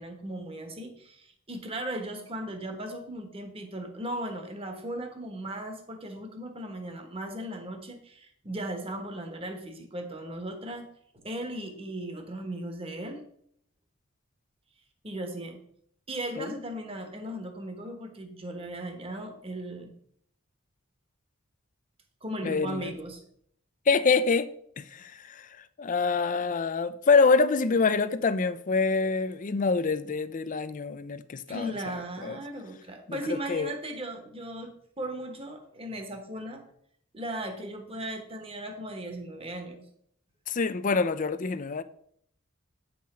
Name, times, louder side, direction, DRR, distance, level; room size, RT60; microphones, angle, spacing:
voice 1, 0.0-10.9 11.1-13.2 15.0-15.6 16.1-19.9 22.2-23.2 31.5-36.6 37.1-39.8, right 1 dB, 30° right, 1.3 m, -37 dB
voice 2, 22.4-22.9 23.9-24.5 24.8-25.5 25.8-31.7 32.2-32.4 33.1-33.2 33.5-33.7 40.5-41.8, left 4 dB, 40° left, 0.5 m, -25 dB
8.7 x 5.6 x 4.3 m
head